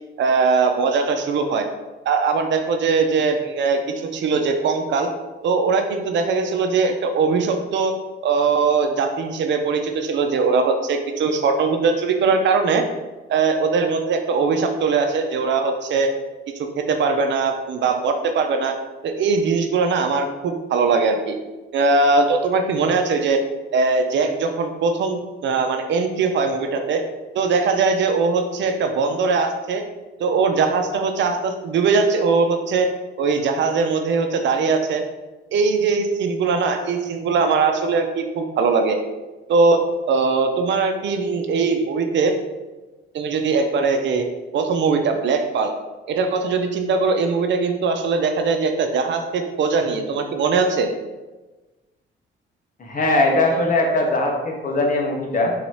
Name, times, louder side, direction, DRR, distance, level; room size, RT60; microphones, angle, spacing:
voice 1, 0.2-1.7 2.0-5.1 5.4-8.0 8.2-12.8 13.3-16.1 16.6-18.7 19.0-21.3 21.7-23.4 23.7-27.0 27.3-29.8 30.2-32.9 33.2-35.0 35.5-39.0 39.5-39.8 40.1-42.3 43.1-44.2 44.5-45.7 46.1-50.9, right 4 dB, 65° right, 5 dB, 0.6 m, -20 dB
voice 2, 52.8-55.5, left 2 dB, 40° left, 0 dB, 1.1 m, -20 dB
3.9 x 2.9 x 4.7 m, 1.2 s
cardioid pair, 90°, 20 cm